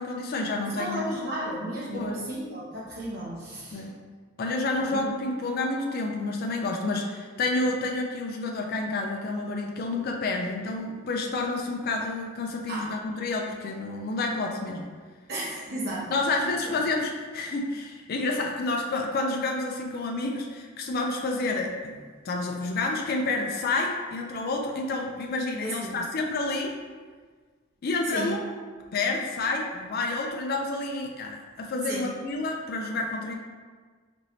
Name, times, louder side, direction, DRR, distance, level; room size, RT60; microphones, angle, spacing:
voice 1, 0.0-1.0 1.9-2.2 3.7-3.9 4.4-14.9 16.1-22.0 22.2-26.7 27.8-28.4 28.9-33.3, left 2 dB, 45° left, 1 dB, 0.3 m, -29 dB
voice 2, 0.6-3.8 4.7-5.0 12.7-12.9 15.3-16.4 25.6-26.0 28.1-28.3 31.9-32.1, right 1 dB, 50° right, -7 dB, 1.1 m, -34 dB
4.1 x 2.6 x 3.0 m, 1.5 s
head